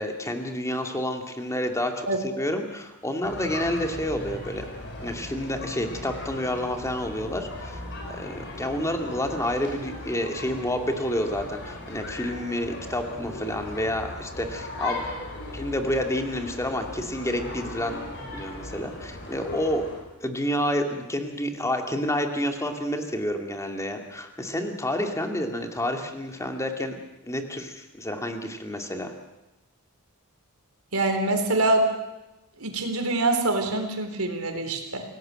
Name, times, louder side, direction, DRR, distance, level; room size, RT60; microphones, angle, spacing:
voice 1, 0.0-4.6 5.0-7.8 8.1-15.0 15.5-18.0 18.3-19.9 20.2-27.0 27.3-29.1, left 1 dB, 15° left, 4 dB, 2.5 m, -29 dB
sound 1, 3.2-20.0, left 2 dB, 55° left, 6.1 m, -38 dB
voice 2, 30.9-31.9 32.6-35.0, right 2 dB, 75° right, 5 dB, 4.1 m, -24 dB
27.5 x 18.0 x 7.8 m, 0.99 s
head